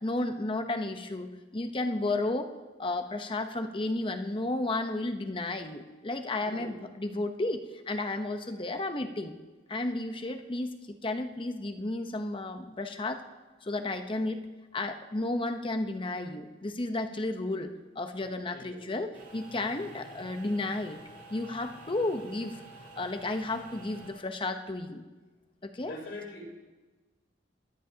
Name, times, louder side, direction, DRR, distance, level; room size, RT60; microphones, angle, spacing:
voice 1, 0.0-2.5 2.8-9.3 9.7-13.2 13.6-14.4 14.7-21.0 21.3-22.6 23.0-25.0 25.6-25.9, left 2 dB, 30° left, 7 dB, 0.8 m, -33 dB
voice 2, 6.4-6.8 18.2-18.9 25.8-26.5, left 1 dB, 80° left, -1 dB, 3.5 m, -44 dB
sound 1, 19.1-24.1, right 2 dB, 60° right, 4.3 m, -49 dB
21.0 x 13.0 x 2.8 m, 1.2 s
head